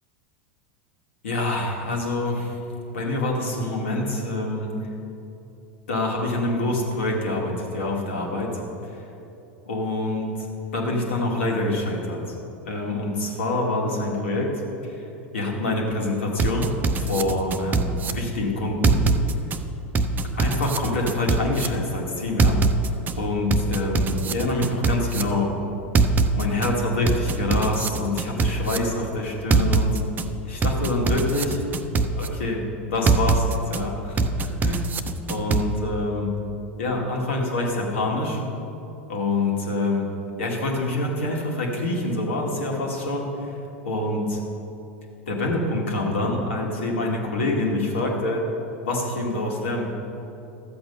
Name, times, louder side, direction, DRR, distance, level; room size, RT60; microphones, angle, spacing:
voice 1, 1.2-2.6 2.9-4.9 5.9-9.0 9.7-10.5 10.7-12.4 12.6-15.1 15.3-19.0 20.3-22.6 23.2-25.5 26.3-30.0 30.5-31.6 32.2-34.9 35.3-36.3 36.8-38.4 39.1-40.1 40.4-43.5 43.8-44.4 45.3-48.4 48.8-49.9, left 2 dB, 75° left, -1 dB, 2.2 m, -26 dB
sound 1, 16.4-18.1 18.8-19.6 19.9-21.7 22.4-23.1 23.5-25.2 25.9-26.7 27.1-28.8 29.5-30.2 30.6-32.3 33.1-33.8 34.2-35.6, right 3 dB, 25° right, 0.7 m, -21 dB
13.5 x 7.9 x 5.5 m, 2.9 s
figure-of-eight pair, 85°, 7 cm